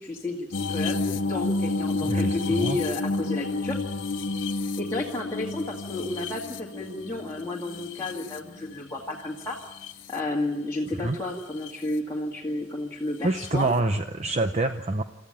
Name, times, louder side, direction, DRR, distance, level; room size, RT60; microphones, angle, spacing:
voice 1, 0.0-3.8 4.8-9.6 10.1-13.7, left 2 dB, 15° left, -4 dB, 2.2 m, -31 dB
sound 1, 0.5-8.8 9.4-10.2 11.4-11.7 13.5-13.6, left 3 dB, 70° left, 0.9 m, -30 dB
voice 2, 2.0-2.8 11.0-11.2 13.2-15.0, right 2 dB, 35° right, 7 dB, 0.8 m, -26 dB
27.5 x 14.0 x 9.0 m, 1.0 s
head